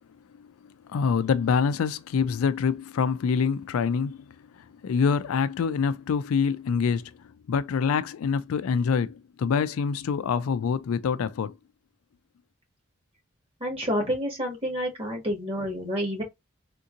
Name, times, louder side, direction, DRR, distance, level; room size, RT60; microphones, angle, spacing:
voice 1, 0.9-4.3 4.8-7.1 7.5-11.5, left 6 dB, 80° left, 0.4 m, -25 dB
voice 2, 13.6-16.2, equal, 30° right, 1.5 m, -29 dB
3.6 x 2.8 x 2.4 m
head